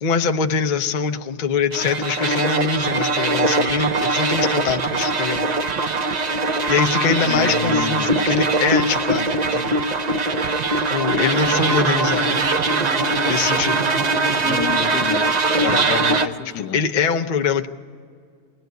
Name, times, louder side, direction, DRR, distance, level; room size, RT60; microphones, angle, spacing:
voice 1, 0.0-5.5 6.7-9.8 10.9-12.4 13.2-13.9 15.7-15.9 16.6-17.7, left 6 dB, 45° left, 0.6 m, -23 dB
sound 1, 1.7-16.3, right 3 dB, 45° right, 0.5 m, -21 dB
voice 2, 7.2-8.4 14.4-15.3 15.6-16.8, left 10 dB, 90° left, 1.5 m, -30 dB
Bowed string instrument, 11.2-15.3, right 5 dB, 60° right, 1.3 m, -30 dB
26.5 x 19.0 x 9.3 m
omnidirectional pair, 1.8 m